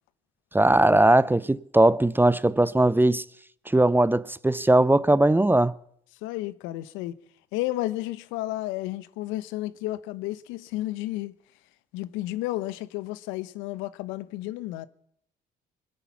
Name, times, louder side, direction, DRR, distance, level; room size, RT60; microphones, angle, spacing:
voice 1, 0.5-3.2 3.7-5.7, right 1 dB, 10° right, 0.6 m, -19 dB
voice 2, 6.2-7.1 7.5-11.3 11.9-14.9, left 16 dB, 75° left, 0.9 m, -32 dB
25.5 x 8.9 x 5.8 m
hypercardioid pair, 55°, 20 cm